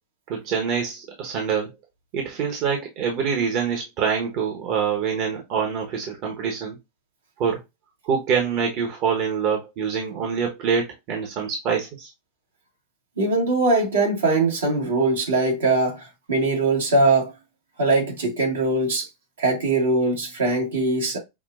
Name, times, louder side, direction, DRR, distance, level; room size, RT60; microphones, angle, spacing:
voice 1, 0.3-1.7 2.1-6.8 7.4-7.6 8.0-12.1, right 6 dB, 55° right, 1.0 m, -25 dB
voice 2, 13.2-16.0 16.3-17.3 17.8-19.1 19.4-21.2, right 2 dB, 85° right, 1.6 m, -21 dB
5.9 x 2.3 x 2.4 m
hypercardioid pair, 100°, 0 cm